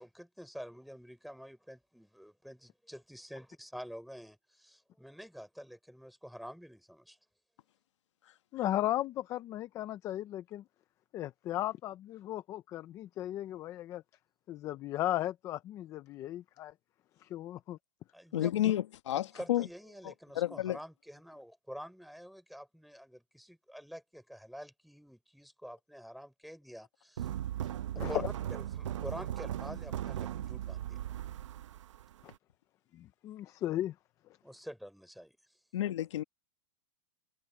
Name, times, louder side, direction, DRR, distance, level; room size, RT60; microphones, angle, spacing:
voice 1, 0.0-7.2 18.1-18.5 19.1-27.3 27.9-28.2 28.5-31.0 34.4-35.4, equal, ahead, 3.9 m, -48 dB
voice 2, 8.5-10.6 11.1-14.0 14.5-16.7 17.2-17.8 28.0-28.3 32.2-32.3 32.9-33.9, left 13 dB, 20° left, 0.5 m, -36 dB
voice 3, 18.3-19.7 20.0-20.8 35.7-36.2, left 13 dB, 75° left, 1.3 m, -31 dB
sound 1, 27.2-32.3, right 11 dB, 90° right, 0.9 m, -38 dB
supercardioid pair, 165°, 15 cm